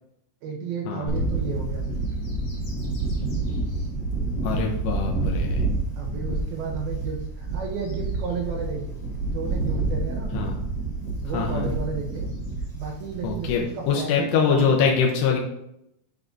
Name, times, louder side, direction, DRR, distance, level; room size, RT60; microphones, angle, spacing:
voice 1, 0.4-2.0 6.0-9.0 9.3-10.4 11.2-12.3 12.7-14.7, right 5 dB, 70° right, 1 dB, 2.8 m, -33 dB
Bird / Wind, 1.1-13.8, right 2 dB, 70° left, 0.9 m, -28 dB
voice 2, 4.4-5.6 10.3-10.5 11.3-11.7 13.2-15.4, left 6 dB, 90° left, -1 dB, 2.9 m, -23 dB
8.7 x 6.2 x 2.7 m, 0.79 s
omnidirectional pair, 4.8 m